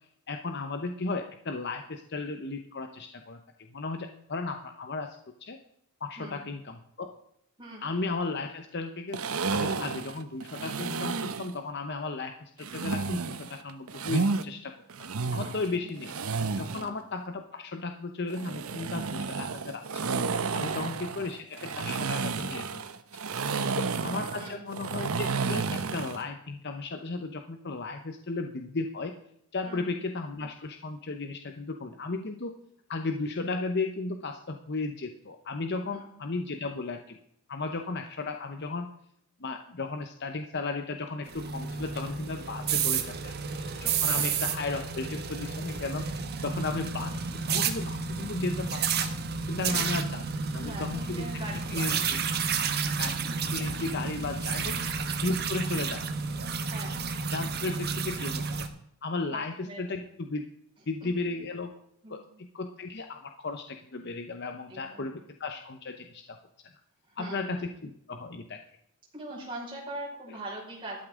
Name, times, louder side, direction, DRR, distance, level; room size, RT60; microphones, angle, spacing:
voice 1, 0.3-5.6 6.0-7.1 7.8-9.2 9.5-14.7 15.3-16.1 16.6-20.1 20.5-23.2 23.8-29.2 29.5-32.5 32.9-37.2 37.5-38.9 39.4-43.3 43.8-46.1 46.4-47.2 47.5-49.1 49.5-50.2 50.5-51.4 51.7-52.2 53.0-53.1 53.5-54.8 55.2-56.0 57.3-58.7 59.0-60.4 60.9-61.7 62.1-66.4 67.2-68.6, left 3 dB, 50° left, 6 dB, 0.8 m, -35 dB
sound 1, 9.1-11.5 12.6-14.4 14.9-16.9 18.3-26.2, right 4 dB, 75° right, 0.8 m, -31 dB
voice 2, 15.3-15.9 16.7-17.0 20.5-20.9 24.3-24.6 29.6-29.9 35.9-36.1 44.1-44.2 49.7-50.0 50.5-52.1 54.6-54.7 55.4-55.6 56.6-57.0 59.3-60.1 61.0-61.1 62.0-62.2 64.7-65.1 67.1-67.7 69.1-71.0, right 1 dB, 25° right, -4 dB, 5.1 m, -42 dB
sound 2, 41.3-58.7, right 5 dB, 45° right, 1.2 m, -31 dB
13.0 x 12.5 x 3.8 m, 0.74 s
head